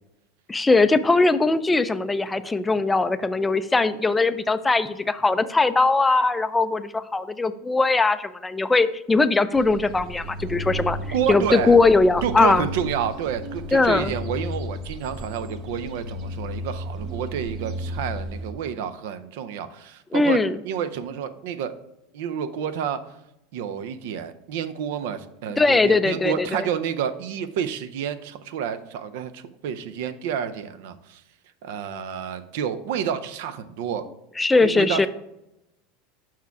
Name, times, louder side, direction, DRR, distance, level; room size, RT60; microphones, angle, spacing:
voice 1, 0.5-11.0 11.3-12.7 13.7-14.1 20.1-20.6 25.6-26.7 34.4-35.1, left 3 dB, 10° left, 12 dB, 0.3 m, -20 dB
sound 1, 9.5-18.5, equal, 50° right, 0.9 m, -34 dB
voice 2, 11.1-11.8 12.2-21.7 22.1-23.0 23.5-31.2 31.6-34.1 34.6-35.1, right 8 dB, 75° right, 11 dB, 0.6 m, -29 dB
5.8 x 4.6 x 4.6 m, 0.87 s
supercardioid pair, 135°, 0 cm